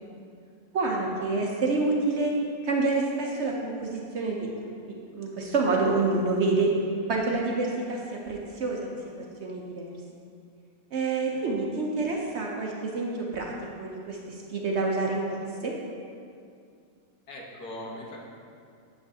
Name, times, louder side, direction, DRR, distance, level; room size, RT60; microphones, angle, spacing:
voice 1, 0.7-2.3 2.6-6.7 7.1-9.0 9.4-9.9 10.9-13.5 13.8-15.7, right 3 dB, 55° right, -1 dB, 0.8 m, -28 dB
voice 2, 17.3-18.2, left 1 dB, 80° left, -2 dB, 1.7 m, -40 dB
9.1 x 6.9 x 2.7 m, 2.4 s
omnidirectional pair, 1.6 m